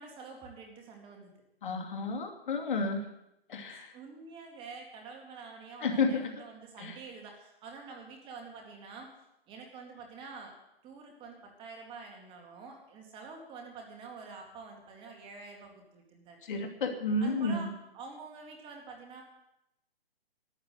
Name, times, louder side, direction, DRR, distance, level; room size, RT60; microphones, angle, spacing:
voice 1, 0.0-1.3 3.6-9.1 9.5-10.5 10.8-16.4 17.2-19.2, right 4 dB, 15° right, 2 dB, 2.2 m, -47 dB
voice 2, 1.6-3.1 3.5-3.9 5.8-6.3 6.8-7.0 16.4-17.7, left 3 dB, 55° left, 4 dB, 2.5 m, -31 dB
12.5 x 9.7 x 8.1 m, 0.84 s
hypercardioid pair, 155°, 30 cm